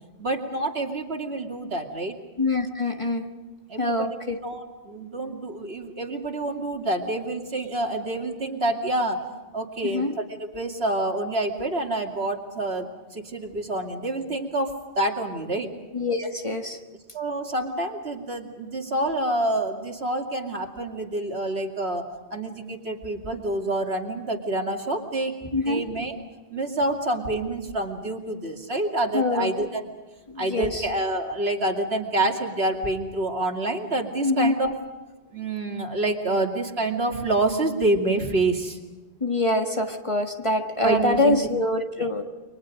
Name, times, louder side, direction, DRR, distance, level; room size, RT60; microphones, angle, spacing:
voice 1, 0.2-2.1 3.7-4.1 4.4-9.2 9.5-15.7 17.1-26.2 26.5-29.8 30.4-34.7 35.3-38.8 40.8-41.4 42.0-42.1, right 2 dB, 65° right, 2 dB, 2.8 m, -27 dB
voice 2, 2.4-3.3 3.8-4.4 9.8-10.1 15.9-16.8 25.5-25.8 29.1-29.5 30.3-30.9 34.2-34.5 39.2-42.2, left 2 dB, 30° left, 4 dB, 1.8 m, -24 dB
30.0 x 24.0 x 5.1 m, 1.2 s
omnidirectional pair, 1.1 m